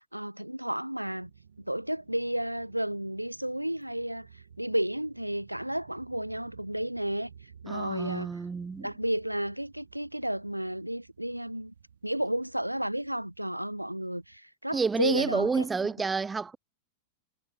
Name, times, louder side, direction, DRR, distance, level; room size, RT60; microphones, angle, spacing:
voice 1, 0.0-1.3 1.6-8.3 8.8-11.7 12.0-15.6, right 1 dB, 90° right, 0.5 m, -32 dB
sound 1, 1.0-14.4, right 7 dB, 70° right, 1.2 m, -55 dB
voice 2, 7.7-8.9 14.7-16.6, right 4 dB, 15° right, 0.3 m, -29 dB
figure-of-eight pair, 90°, 0 cm